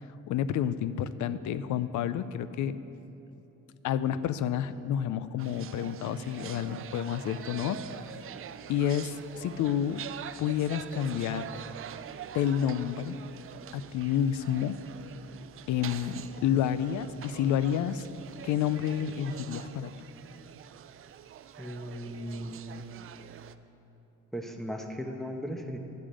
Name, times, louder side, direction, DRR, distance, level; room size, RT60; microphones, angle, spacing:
voice 1, 0.3-2.8 3.8-7.8 8.7-10.0 10.4-11.5 12.3-13.2 13.7-14.7 15.7-18.1 18.4-19.9, left 9 dB, 75° left, 14 dB, 0.5 m, -29 dB
sound 1, 5.4-23.5, right 9 dB, 45° right, 0.4 m, -45 dB
voice 2, 21.6-22.8 24.3-25.8, equal, ahead, 3 dB, 1.0 m, -37 dB
11.5 x 5.0 x 7.5 m, 2.9 s
cardioid pair, 90°, 30 cm